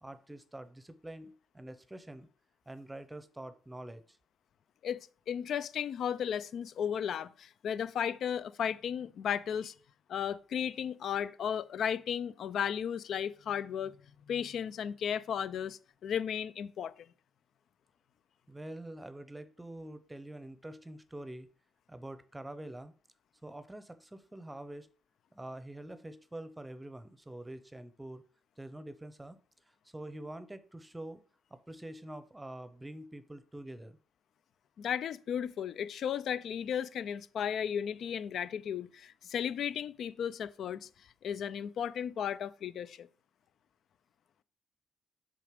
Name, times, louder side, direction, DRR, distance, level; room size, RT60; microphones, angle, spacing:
voice 1, 0.0-2.3 2.7-4.2 18.5-21.5 21.9-22.9 23.4-24.9 25.3-28.2 28.6-29.4 29.7-31.2 31.5-34.0, right 1 dB, 10° right, 0.7 m, -46 dB
voice 2, 5.3-9.7 10.1-13.9 14.3-16.9 34.8-40.9 41.2-43.1, left 8 dB, 65° left, 0.4 m, -35 dB
6.5 x 4.0 x 5.1 m
cardioid pair, 90°, 0 cm